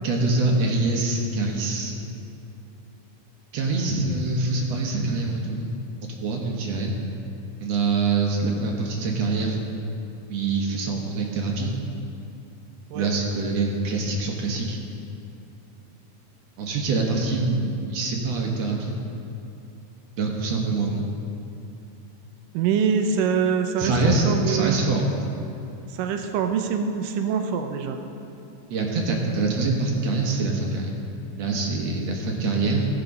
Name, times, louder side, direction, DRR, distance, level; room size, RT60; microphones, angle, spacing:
voice 1, 0.0-1.9 3.5-5.7 6.2-6.9 7.6-9.6 10.3-11.7 12.9-14.8 16.6-19.0 20.2-21.1 23.8-25.1 28.7-30.9 31.4-32.9, right 3 dB, 65° right, 0 dB, 1.9 m, -24 dB
voice 2, 22.5-24.8 25.9-28.0, right 6 dB, 85° right, 6 dB, 2.3 m, -24 dB
17.0 x 5.9 x 5.3 m, 2.8 s
omnidirectional pair, 3.9 m